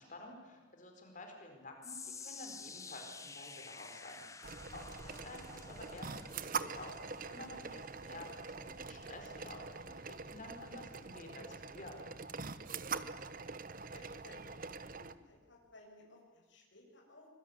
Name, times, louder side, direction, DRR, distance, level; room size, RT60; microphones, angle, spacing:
voice 1, 0.0-4.2 4.7-12.1, left 2 dB, 40° left, 3 dB, 4.8 m, -51 dB
sound 1, 1.8-14.1 14.5-14.8 15.5-15.6, left 4 dB, 15° left, 1.1 m, -53 dB
sound 2, 4.4-15.1, right 5 dB, 45° right, 1.0 m, -44 dB
voice 2, 13.8-17.3, left 2 dB, 65° left, 0 dB, 7.2 m, -59 dB
25.0 x 22.0 x 9.8 m, 1.3 s
head